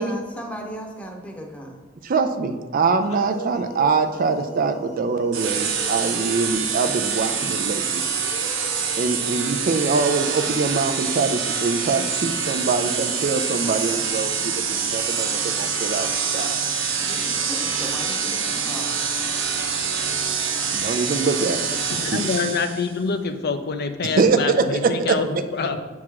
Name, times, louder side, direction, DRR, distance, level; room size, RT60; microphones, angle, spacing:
voice 1, 0.0-1.7 17.0-19.0, equal, 5° left, 1 dB, 0.9 m, -36 dB
voice 2, 2.0-8.0 9.0-14.5 14.8-16.6 20.7-21.7 22.1-22.3 24.2-24.6, right 4 dB, 45° right, 8 dB, 0.4 m, -23 dB
sound 1, 3.0-6.8 8.1-11.7, right 1 dB, 35° left, 0.9 m, -40 dB
sound 2, 5.3-22.9, right 6 dB, 90° right, 0.9 m, -25 dB
voice 3, 21.9-25.8, left 4 dB, 55° left, 8 dB, 0.5 m, -26 dB
7.4 x 3.6 x 4.7 m, 1.4 s
head